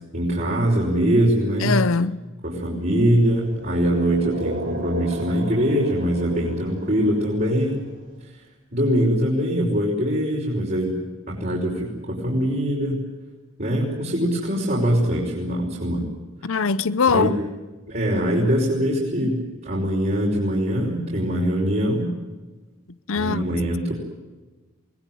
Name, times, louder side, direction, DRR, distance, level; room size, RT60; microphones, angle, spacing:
voice 1, 0.1-1.8 2.4-7.8 8.7-11.0 11.3-13.0 13.6-16.1 17.1-17.4 17.9-22.1 23.2-23.9, equal, 40° right, 5.5 m, -22 dB
voice 2, 1.6-2.2 16.4-17.3 23.1-23.5, left 5 dB, 70° left, 0.7 m, -21 dB
sound 1, 2.9-7.9, right 2 dB, 60° right, 7.0 m, -35 dB
23.5 x 20.0 x 9.4 m
head